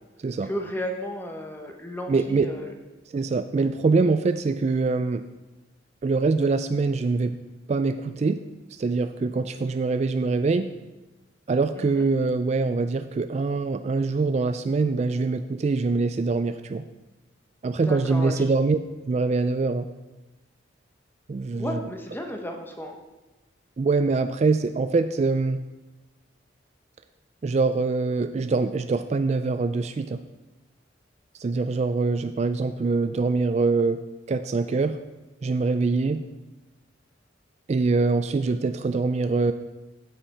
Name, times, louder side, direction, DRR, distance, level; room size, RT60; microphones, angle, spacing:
voice 1, 0.4-2.7 11.7-12.0 17.9-18.4 21.6-23.0, equal, 10° left, 3 dB, 1.0 m, -33 dB
voice 2, 2.1-2.5 3.1-5.2 6.0-7.4 7.7-8.4 8.7-10.7 11.5-16.9 17.6-18.8 19.1-19.9 21.3-21.8 23.8-25.6 27.4-30.2 31.4-34.0 34.3-35.0 35.4-36.2 37.7-39.5, right 3 dB, 35° right, 10 dB, 0.3 m, -24 dB
15.0 x 5.7 x 4.3 m, 1.1 s
head